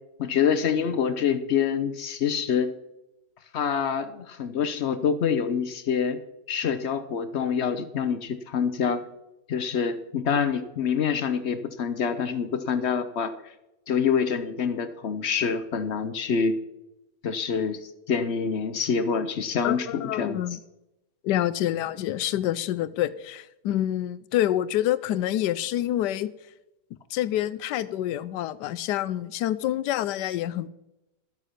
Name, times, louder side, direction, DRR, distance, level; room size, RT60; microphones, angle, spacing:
voice 1, 0.2-2.7 3.5-6.2 6.5-9.0 9.5-13.5 13.9-16.6 17.2-20.4, left 6 dB, 55° left, 11 dB, 0.8 m, -26 dB
voice 2, 19.6-20.6 21.2-26.3 27.1-30.7, left 12 dB, 85° left, 16 dB, 1.2 m, -27 dB
12.0 x 8.1 x 5.7 m, 0.93 s
omnidirectional pair, 1.8 m